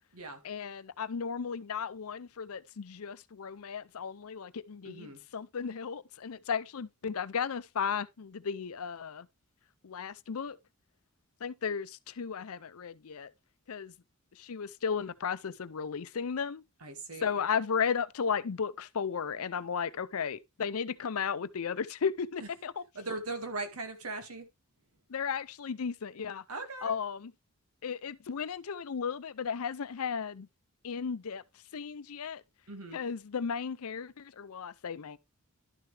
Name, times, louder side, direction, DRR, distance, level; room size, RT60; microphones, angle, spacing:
voice 1, 0.4-9.3 9.8-10.6 11.4-13.3 13.7-13.9 14.3-16.6 17.2-22.8 25.1-26.4 26.8-27.3 27.8-30.5 30.8-31.4 31.7-32.4 32.9-35.2, left 6 dB, 80° left, 0.6 m, -35 dB
voice 2, 4.8-5.2 16.8-17.3 22.4-22.5 23.0-24.5 26.5-26.9 32.7-33.0, right 3 dB, 85° right, 2.0 m, -39 dB
12.0 x 6.6 x 3.3 m
head